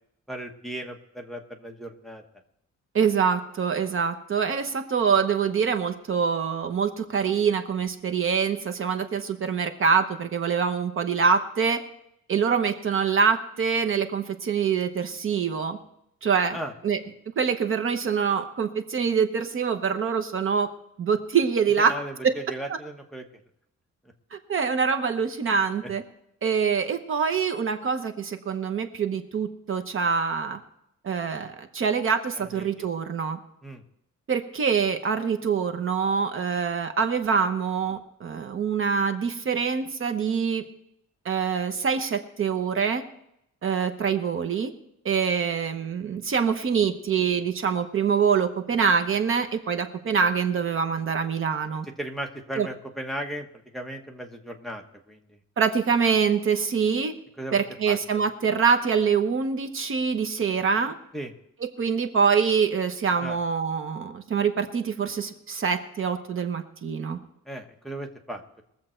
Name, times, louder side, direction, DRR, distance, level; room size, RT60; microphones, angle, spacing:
voice 1, 0.3-2.2 16.5-16.7 21.9-23.2 25.4-25.5 25.8-25.9 32.3-32.7 33.6-33.8 52.0-53.5 53.7-55.2 57.4-58.0 61.1-61.3 63.2-63.4 67.5-68.6, right 1 dB, ahead, 2 dB, 1.1 m, -36 dB
voice 2, 2.9-11.8 12.3-15.8 16.2-16.6 16.8-17.0 17.4-20.7 21.0-22.0 22.2-22.3 24.3-26.0 26.4-30.6 31.0-33.4 34.3-40.6 41.2-43.0 43.6-44.7 45.0-51.9 52.6-52.7 55.6-57.1 57.5-60.9 61.8-67.2, right 6 dB, 45° right, 7 dB, 0.9 m, -25 dB
21.5 x 7.6 x 4.4 m, 0.78 s
wide cardioid pair, 170°, 30 cm